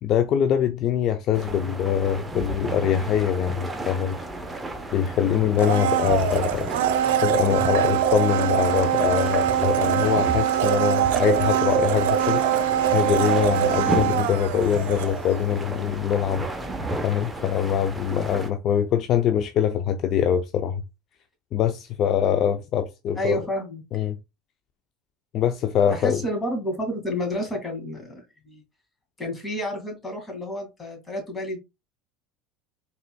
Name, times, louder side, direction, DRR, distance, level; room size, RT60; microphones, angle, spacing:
voice 1, 0.0-4.2 4.9-6.7 7.2-12.4 12.9-16.5 17.0-20.8 21.5-23.4 23.9-24.2 25.3-26.2, left 9 dB, 50° left, 0.5 m, -23 dB
sound 1, 1.3-18.5, right 2 dB, 15° right, 0.9 m, -33 dB
Domestic sounds home sounds, 5.6-15.5 15.8-15.9, right 10 dB, 80° right, 0.5 m, -23 dB
voice 2, 23.2-23.8 25.9-28.6 29.2-31.6, left 1 dB, 15° left, 2.1 m, -30 dB
4.2 x 4.0 x 2.3 m
supercardioid pair, 105°, 0 cm